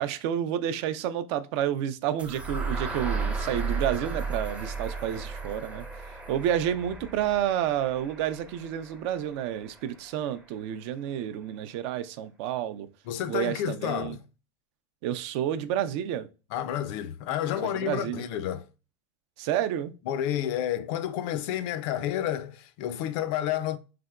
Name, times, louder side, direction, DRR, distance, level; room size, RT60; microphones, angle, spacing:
voice 1, 0.0-5.9 6.3-12.9 13.3-14.2 15.0-16.3 17.6-18.2 19.4-19.9, right 10 dB, 60° right, 0.4 m, -30 dB
sound 1, 2.2-10.1, right 4 dB, 5° right, 0.5 m, -35 dB
voice 2, 13.1-14.2 16.5-18.7 20.1-23.8, left 11 dB, 55° left, 0.4 m, -30 dB
3.4 x 2.8 x 2.2 m
supercardioid pair, 130°, 17 cm